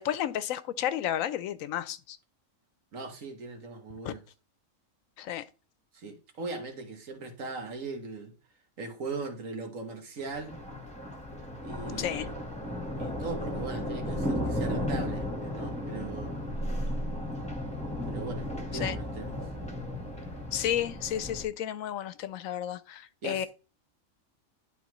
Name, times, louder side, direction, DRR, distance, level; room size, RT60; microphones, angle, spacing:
voice 1, 0.0-2.2 4.0-4.1 5.2-5.5 12.0-12.3 18.8-19.0 20.5-23.5, left 11 dB, 80° left, 1.0 m, -32 dB
voice 2, 2.9-4.2 5.9-8.3 8.8-10.6 11.6-12.3 13.0-16.4 18.0-19.4 23.2-23.5, right 3 dB, 70° right, 1.7 m, -39 dB
Thunder, 10.3-21.4, left 1 dB, 5° left, 1.2 m, -34 dB
11.0 x 3.9 x 3.0 m
omnidirectional pair, 1.4 m